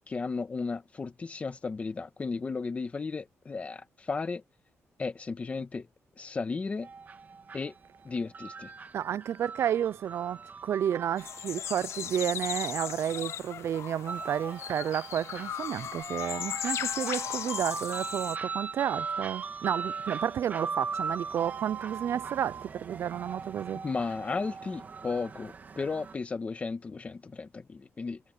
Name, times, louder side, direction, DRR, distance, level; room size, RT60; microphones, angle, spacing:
voice 1, 0.0-4.4 5.0-5.9 6.2-6.9 7.5-7.7 8.0-8.7 23.8-28.2, left 4 dB, 25° left, 1.7 m, -34 dB
sound 1, 6.8-26.2, right 5 dB, 35° right, 2.5 m, -40 dB
sound 2, 7.8-16.9, right 10 dB, 75° right, 7.2 m, -57 dB
voice 2, 8.9-23.8, right 9 dB, 60° right, 0.4 m, -31 dB
sound 3, 11.2-18.4, left 10 dB, 65° left, 0.3 m, -37 dB
wide cardioid pair, 175°, 5 cm